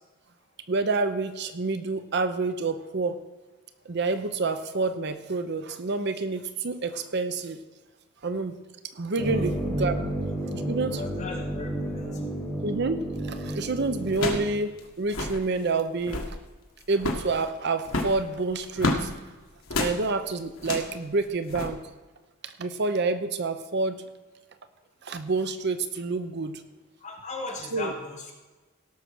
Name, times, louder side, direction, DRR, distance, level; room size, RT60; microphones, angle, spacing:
voice 1, 0.7-3.2 3.8-7.6 8.2-8.6 8.9-10.0 10.7-11.0 12.6-14.7 15.0-16.4 16.9-19.1 19.8-21.8 22.4-24.0 25.0-26.6 27.7-27.9, right 3 dB, 55° right, 10 dB, 0.7 m, -28 dB
sound 1, 9.2-14.5, right 1 dB, 5° left, 4.6 m, -31 dB
voice 2, 10.9-12.3 27.0-28.3, left 3 dB, 35° left, -2 dB, 2.4 m, -38 dB
sound 2, 13.1-13.4 14.1-14.5 14.8-14.9 15.0-15.4 15.9-16.4 17.0-17.3 17.8-19.1 19.7-20.0 20.6-20.9 21.5-21.7, left 2 dB, 80° left, 1.7 m, -29 dB
17.5 x 6.2 x 6.1 m, 1.2 s
head